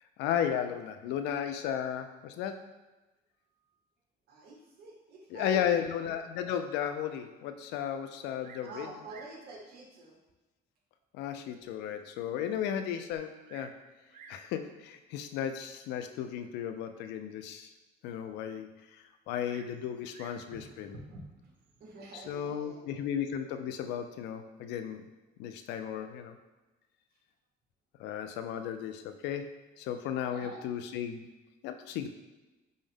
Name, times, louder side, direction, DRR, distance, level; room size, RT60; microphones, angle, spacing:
voice 1, 0.2-2.7 5.3-8.9 11.1-13.8 14.3-17.7 18.0-20.9 22.1-25.1 25.4-26.4 28.0-31.3 31.6-32.1, left 9 dB, 85° left, 8 dB, 0.4 m, -35 dB
voice 2, 4.3-5.8 8.6-10.2 20.5-23.0 30.2-30.6, right 2 dB, 70° right, -1 dB, 1.0 m, -47 dB
Bird vocalization bird call bird song, 8.4-8.8 9.0-9.4 10.3-10.4 11.0-11.1 11.6-11.7 11.9-12.0 13.1-13.8 14.1-14.5 15.5-15.8 19.4-20.5 21.5-22.0, right 5 dB, 55° right, 0.4 m, -54 dB
5.3 x 2.1 x 3.5 m, 1.1 s
cardioid pair, 110°, 17 cm